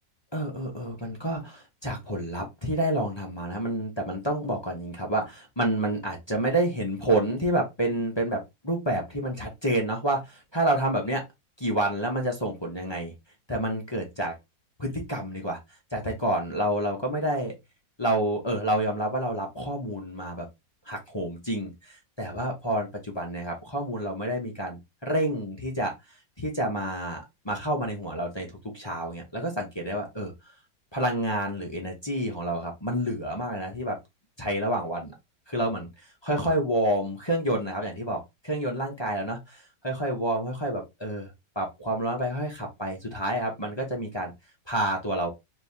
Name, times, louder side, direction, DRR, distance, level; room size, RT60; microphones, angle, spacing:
voice 1, 0.3-11.2 11.6-13.1 13.5-14.3 14.8-15.6 15.9-17.5 18.0-20.5 20.9-25.9 26.4-27.2 27.4-30.3 30.9-34.0 34.4-35.1 35.5-35.9 36.2-44.3 44.7-45.3, right 1 dB, 25° left, 0 dB, 0.6 m, -29 dB
4.5 x 2.8 x 3.3 m, 0.21 s
omnidirectional pair, 2.0 m